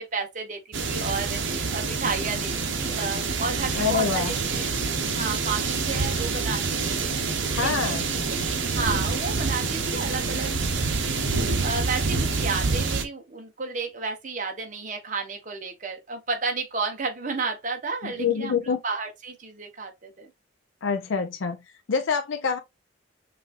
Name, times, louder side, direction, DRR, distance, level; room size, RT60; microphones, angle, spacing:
voice 1, 0.0-4.7 5.1-8.0 8.3-20.3, right 4 dB, 40° right, 1.0 m, -32 dB
sound 1, 0.7-13.0, right 4 dB, 75° right, 0.8 m, -27 dB
voice 2, 3.7-4.3 5.0-5.1 7.5-8.0 18.0-18.8 20.8-21.6 21.9-22.6, left 6 dB, 80° left, 0.5 m, -26 dB
5.9 x 2.6 x 2.5 m
head